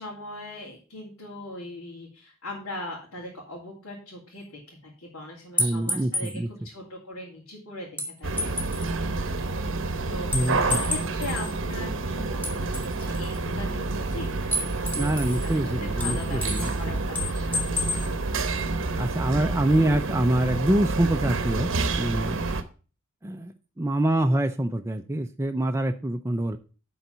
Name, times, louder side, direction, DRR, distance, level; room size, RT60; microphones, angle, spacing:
voice 1, 0.0-8.9 10.0-10.4 10.6-18.1, left 1 dB, 85° left, -4 dB, 2.6 m, -40 dB
sound 1, 5.6-6.3 8.0-8.9 10.3-11.5 12.4-13.4 14.5-15.5 16.0-16.8 17.2-18.1, left 1 dB, 10° left, 1.4 m, -30 dB
voice 2, 5.6-6.5 10.3-10.8 15.0-16.7 19.0-21.7 22.0-22.5 23.2-26.6, right 1 dB, 10° right, 5 dB, 0.4 m, -25 dB
sound 2, 8.2-22.6, right 3 dB, 60° right, 0.8 m, -29 dB
10.5 x 4.0 x 5.6 m, 0.36 s
head